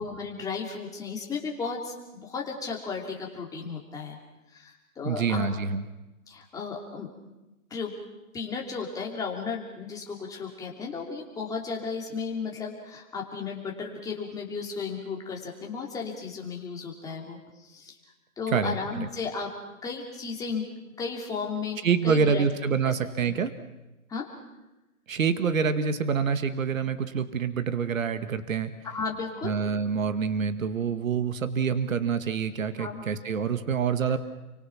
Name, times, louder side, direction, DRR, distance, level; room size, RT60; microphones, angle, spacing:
voice 1, 0.0-4.2 4.5-5.5 6.3-7.1 7.7-7.9 8.3-18.0 18.4-19.5 19.8-20.6 21.0-22.9 23.2-23.3 24.1-24.3 28.8-29.5 32.8-33.0, left 5 dB, 10° left, -1 dB, 2.9 m, -34 dB
voice 2, 5.0-5.8 18.5-19.1 21.8-23.5 25.1-28.7 29.4-34.2, right 6 dB, 65° right, 10 dB, 2.1 m, -26 dB
30.0 x 25.0 x 5.9 m, 1.0 s
hypercardioid pair, 155°, 43 cm